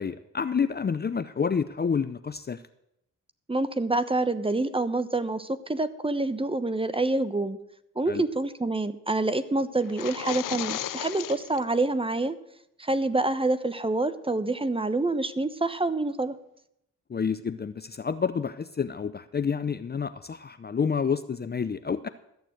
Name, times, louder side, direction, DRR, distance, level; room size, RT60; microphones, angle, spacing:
voice 1, 0.0-2.6 8.1-8.2 17.1-22.1, left 6 dB, 30° left, 12 dB, 0.6 m, -29 dB
voice 2, 3.5-7.6 8.0-12.4 12.8-16.4, right 2 dB, 15° right, 13 dB, 1.0 m, -27 dB
sound 1, 9.8-11.6, left 12 dB, 75° left, 0.6 m, -34 dB
13.5 x 6.9 x 7.8 m, 0.79 s
cardioid pair, 55°, 32 cm